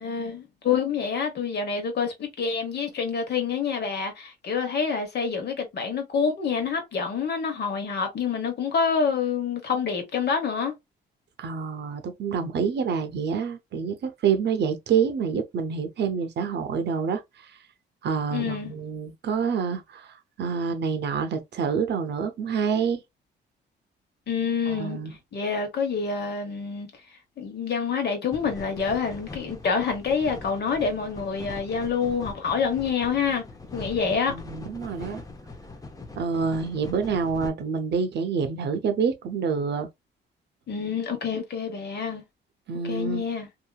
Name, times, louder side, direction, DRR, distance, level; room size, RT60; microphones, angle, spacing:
voice 1, 0.0-10.7 18.3-18.7 24.3-25.0 25.3-26.9 27.4-33.4 33.7-34.3 40.7-42.2 42.8-43.5, left 6 dB, 55° left, 1.2 m, -27 dB
voice 2, 11.4-17.5 18.0-23.0 24.7-25.1 34.3-35.2 36.1-39.9 42.7-43.2, right 6 dB, 60° right, 0.7 m, -27 dB
sound 1, 28.3-37.5, left 2 dB, 15° left, 0.7 m, -42 dB
2.8 x 2.6 x 2.3 m
cardioid pair, 90°, 20 cm